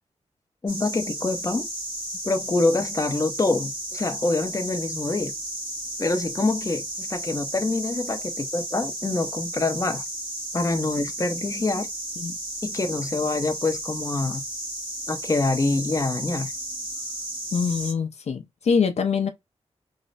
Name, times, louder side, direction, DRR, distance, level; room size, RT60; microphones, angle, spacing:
voice 1, 0.6-1.7 2.2-5.3 6.0-10.0 10.5-11.9 12.6-14.4 15.1-16.5, left 3 dB, 30° left, 0.7 m, -25 dB
sound 1, 0.7-17.9, right 1 dB, 40° right, 1.6 m, -33 dB
voice 2, 17.5-19.3, left 5 dB, 65° left, 0.6 m, -24 dB
3.2 x 2.1 x 3.9 m
wide cardioid pair, 80°, 12 cm